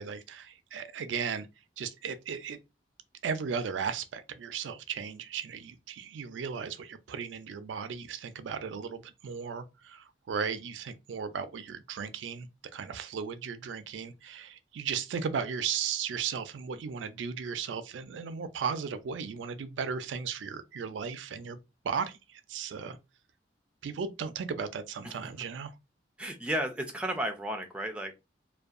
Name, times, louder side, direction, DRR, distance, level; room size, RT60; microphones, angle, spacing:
voice 1, 0.0-1.5 1.8-2.6 3.2-12.5 12.7-21.6 21.8-23.0 23.8-25.7, right 6 dB, 85° right, 0.4 m, -36 dB
voice 2, 26.2-28.2, right 1 dB, 5° right, 0.4 m, -33 dB
2.6 x 2.2 x 2.4 m
head